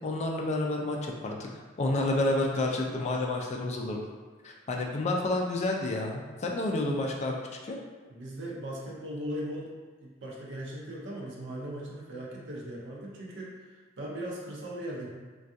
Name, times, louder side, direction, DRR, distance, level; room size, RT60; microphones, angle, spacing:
voice 1, 0.0-1.5 1.8-4.0 4.4-7.4 7.6-7.8, left 2 dB, 35° left, 0 dB, 0.3 m, -29 dB
voice 2, 8.1-9.7 10.0-13.6 14.0-15.1, right 1 dB, 65° right, -4 dB, 0.6 m, -38 dB
3.4 x 2.3 x 2.6 m, 1.4 s
head